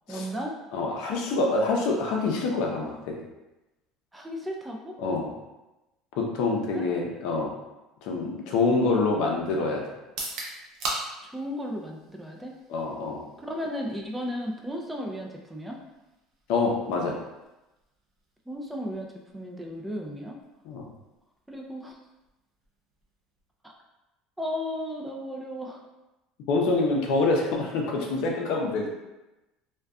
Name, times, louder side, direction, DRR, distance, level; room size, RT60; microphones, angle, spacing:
voice 1, 0.1-0.5 4.1-5.0 6.7-6.9 11.2-12.5 13.4-15.8 18.5-20.4 21.5-22.0 23.6-23.7 24.4-25.8, equal, 5° right, 0 dB, 0.3 m, -35 dB
voice 2, 0.7-3.2 5.0-5.3 6.2-7.5 8.0-9.9 12.7-13.2 16.5-17.2 20.6-20.9 26.5-28.9, left 3 dB, 70° left, 0 dB, 0.5 m, -26 dB
sound 1, 10.0-23.9, right 2 dB, 60° right, 0.5 m, -43 dB
2.5 x 2.1 x 2.3 m, 1.0 s
cardioid pair, 125°, 0 cm